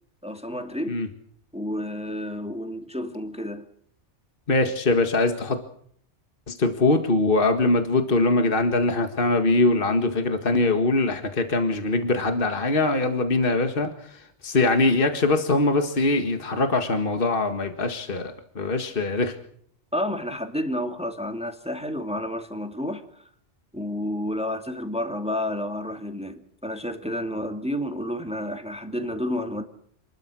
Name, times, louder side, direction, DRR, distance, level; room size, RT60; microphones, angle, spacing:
voice 1, 0.2-1.0 1.5-3.7 19.9-23.2 23.7-29.6, left 1 dB, 5° right, 2.3 m, -30 dB
voice 2, 4.5-5.6 6.5-19.4, left 2 dB, 50° left, 2.0 m, -22 dB
28.0 x 21.5 x 6.3 m
omnidirectional pair, 1.2 m